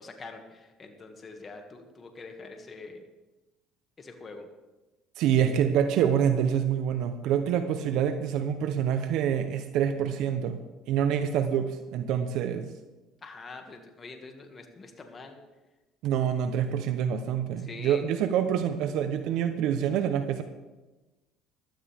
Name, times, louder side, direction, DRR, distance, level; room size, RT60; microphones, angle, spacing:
voice 1, 0.0-3.1 4.0-4.5 13.2-15.4 17.6-18.0, left 3 dB, 30° left, 4 dB, 2.2 m, -44 dB
voice 2, 5.2-10.6 10.9-12.7 16.0-20.4, right 9 dB, 70° right, 9 dB, 0.9 m, -26 dB
15.5 x 12.5 x 3.6 m, 1.1 s
supercardioid pair, 90°, 0 cm